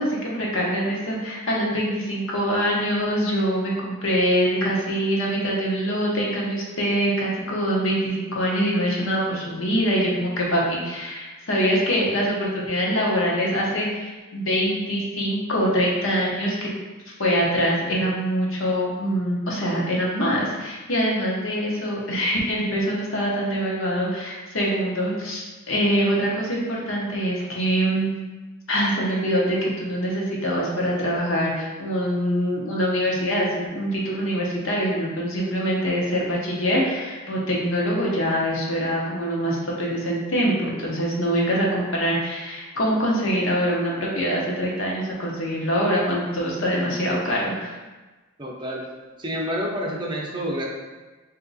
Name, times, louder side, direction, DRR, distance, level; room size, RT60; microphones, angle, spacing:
voice 1, 0.0-16.7 17.2-28.1 28.7-47.8, equal, 75° left, -3 dB, 0.9 m, -24 dB
voice 2, 48.4-48.8 49.2-50.7, equal, 25° right, -3 dB, 0.6 m, -28 dB
3.5 x 2.8 x 3.9 m, 1.2 s
head